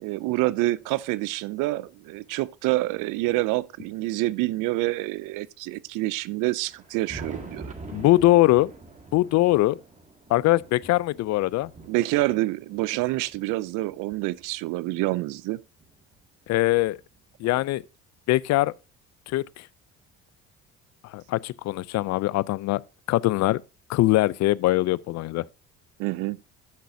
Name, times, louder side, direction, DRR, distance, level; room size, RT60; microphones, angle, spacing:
voice 1, 0.0-7.7 11.9-15.6 26.0-26.4, right 19 dB, 80° right, 0.5 m, -27 dB
Thunder, 6.6-15.1 15.8-17.5 18.6-18.7 19.3-19.4 21.3-21.4 22.7-22.8 24.4-24.5, right 2 dB, 25° right, 2.1 m, -46 dB
voice 2, 7.9-8.7 9.1-9.8 10.3-11.7 16.5-17.0 17.4-17.8 18.3-18.7 19.3-19.6 21.1-22.8 23.1-23.6 23.9-25.4, left 17 dB, 60° left, 0.4 m, -22 dB
13.0 x 6.2 x 2.6 m
supercardioid pair, 85°, 31 cm